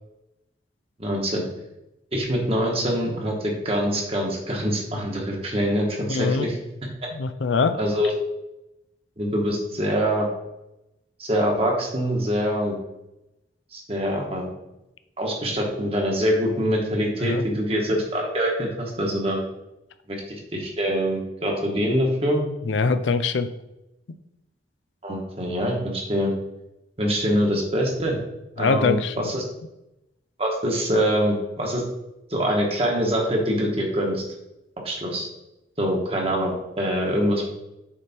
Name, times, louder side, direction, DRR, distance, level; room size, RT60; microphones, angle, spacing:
voice 1, 1.0-1.4 2.1-6.6 7.8-8.1 9.2-10.3 11.2-12.7 13.7-14.5 15.2-19.4 20.1-20.2 20.5-22.4 25.0-26.3 27.0-28.2 28.6-29.4 30.4-31.8 32.3-34.2 34.8-35.3 35.8-37.4, equal, 30° right, 0 dB, 1.3 m, -24 dB
voice 2, 6.1-6.5 7.1-7.8 17.2-17.4 22.6-23.5 28.6-29.1, left 4 dB, 90° left, 11 dB, 0.5 m, -22 dB
7.1 x 3.4 x 4.4 m, 0.91 s
head